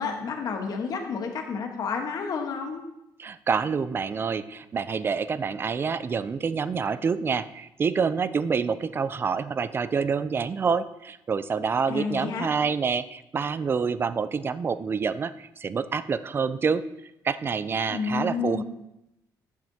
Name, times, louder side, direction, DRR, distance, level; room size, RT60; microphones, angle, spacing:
voice 1, 0.0-2.8 11.9-12.5 17.9-18.6, left 5 dB, 55° left, 4 dB, 1.2 m, -30 dB
voice 2, 3.2-16.8 17.2-18.6, right 5 dB, 30° right, 14 dB, 0.3 m, -27 dB
10.5 x 7.4 x 2.8 m, 0.87 s
cardioid pair, 120°, 8 cm